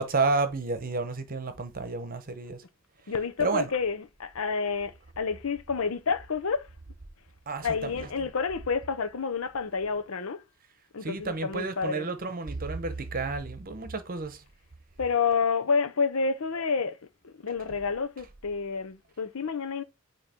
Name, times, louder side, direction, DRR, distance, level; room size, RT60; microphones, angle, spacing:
voice 1, 0.0-2.6 3.4-3.7 7.5-8.1 11.0-14.4, right 3 dB, 40° right, 0.9 m, -30 dB
voice 2, 3.1-6.7 7.6-10.4 10.9-12.1 15.0-17.0 17.2-19.8, left 5 dB, 75° left, 0.7 m, -29 dB
8.8 x 3.0 x 4.4 m
head